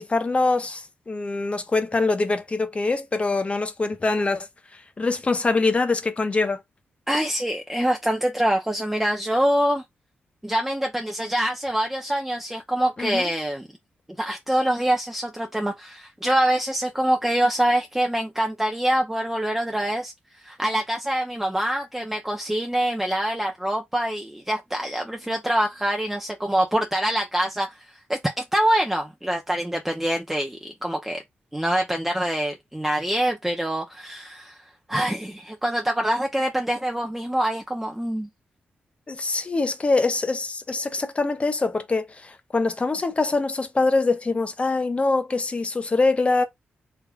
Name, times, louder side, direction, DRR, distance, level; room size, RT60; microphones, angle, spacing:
voice 1, 0.0-4.5 5.0-6.6 13.0-13.2 39.1-46.4, left 3 dB, 30° left, 0.7 m, -24 dB
voice 2, 7.1-9.8 10.4-13.7 14.2-31.2 31.5-38.3, right 1 dB, 5° right, 0.6 m, -25 dB
3.4 x 3.2 x 2.3 m
cardioid pair, 70°, 4 cm